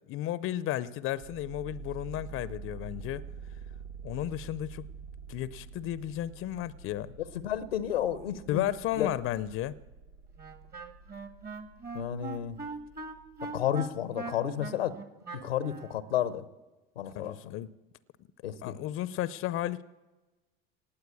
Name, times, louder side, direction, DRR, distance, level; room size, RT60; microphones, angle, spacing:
voice 1, 0.1-3.2 4.0-4.9 5.3-7.1 8.5-9.7 17.1-17.7 18.6-19.8, left 13 dB, 50° left, 0.6 m, -33 dB
sound 1, 1.2-13.8, right 5 dB, 90° right, 1.5 m, -47 dB
voice 2, 7.4-8.7 8.9-9.1 11.9-12.6 13.4-15.0 15.4-16.4 17.0-17.5 18.4-18.7, left 10 dB, 85° left, 0.8 m, -31 dB
Wind instrument woodwind instrument, 10.4-16.0, right 4 dB, 35° right, 1.7 m, -41 dB
18.5 x 8.0 x 8.4 m
hypercardioid pair, 70°, 29 cm